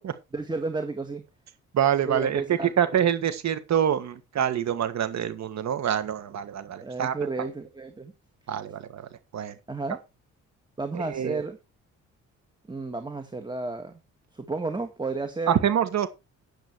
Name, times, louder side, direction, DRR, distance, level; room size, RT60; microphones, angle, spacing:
voice 1, 0.3-1.2 2.1-3.0 6.8-8.1 9.7-10.0 10.8-11.6 12.7-14.0 14.3-15.6, right 3 dB, 15° right, 1.7 m, -32 dB
voice 2, 1.7-7.1 8.5-9.0 9.3-9.5 10.9-11.4 15.5-16.1, right 9 dB, 65° right, 1.6 m, -26 dB
10.5 x 9.0 x 4.6 m
cardioid pair, 90°, 30 cm